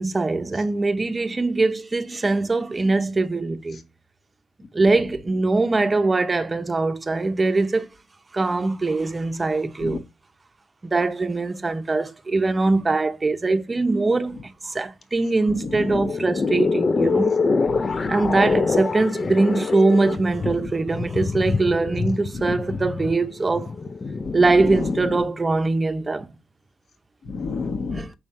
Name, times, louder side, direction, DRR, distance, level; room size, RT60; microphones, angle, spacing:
voice 1, 0.0-3.8 4.7-7.9 8.3-10.0 10.8-17.3 18.1-23.7 24.3-26.3 27.9-28.1, right 3 dB, 25° right, 0.8 m, -22 dB
voice 2, 15.6-16.1 17.7-18.1 22.5-22.6 24.2-24.4 24.6-25.0 27.3-28.0, left 4 dB, 50° left, 1.3 m, -29 dB
sound 1, 15.7-24.5, left 4 dB, 35° left, 0.5 m, -25 dB
6.2 x 3.5 x 4.3 m
cardioid pair, 90°, 0 cm